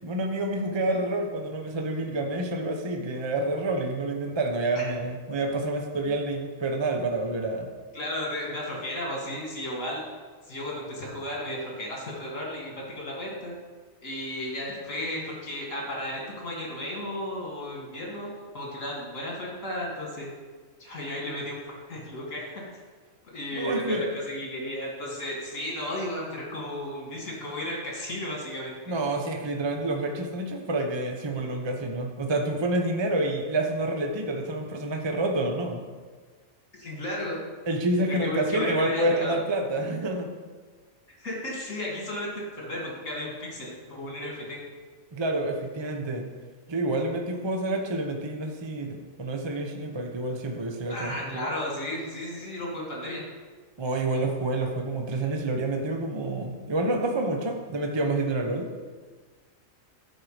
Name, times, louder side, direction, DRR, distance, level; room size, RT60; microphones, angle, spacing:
voice 1, 0.0-7.7 23.5-24.0 28.9-35.8 37.7-40.3 45.1-46.3 46.7-51.5 53.8-58.7, right 2 dB, 25° right, 2 dB, 0.7 m, -28 dB
voice 2, 7.9-10.0 10.4-13.5 14.0-18.3 18.5-20.3 20.8-21.6 21.9-22.5 23.3-28.9 36.7-37.4 38.0-39.4 41.2-44.6 50.9-53.3, left 1 dB, 70° left, -3 dB, 2.7 m, -34 dB
13.5 x 4.7 x 5.0 m, 1.5 s
omnidirectional pair, 1.4 m